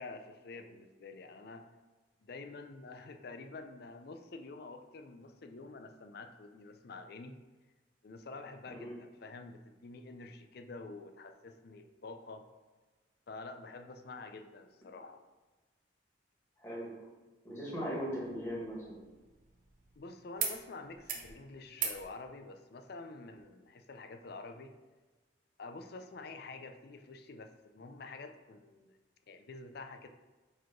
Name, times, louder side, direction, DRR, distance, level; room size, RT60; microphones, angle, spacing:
voice 1, 0.0-1.7 2.2-7.3 8.0-12.5 13.3-15.2 20.0-24.7 25.6-29.0 29.3-30.1, left 3 dB, 55° left, 7 dB, 0.5 m, -48 dB
voice 2, 16.6-16.9 17.4-19.0, equal, 15° left, -6 dB, 1.9 m, -38 dB
sound 1, 18.2-20.0 20.4-20.6 20.9-21.3 21.7-22.0 23.4-23.5, right 7 dB, 45° right, 0.7 m, -40 dB
4.8 x 4.6 x 4.5 m, 1.2 s
head